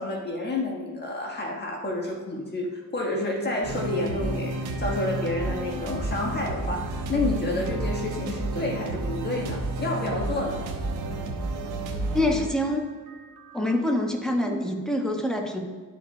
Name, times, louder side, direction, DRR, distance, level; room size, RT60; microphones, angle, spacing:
voice 1, 0.0-10.6, left 2 dB, 35° left, 0 dB, 1.5 m, -29 dB
sound 1, 3.6-13.8, right 2 dB, 90° right, 1.1 m, -31 dB
voice 2, 12.1-12.8 13.5-15.6, left 1 dB, ahead, 1 dB, 1.3 m, -25 dB
12.0 x 5.2 x 2.3 m, 1.5 s
cardioid pair, 90°, 30 cm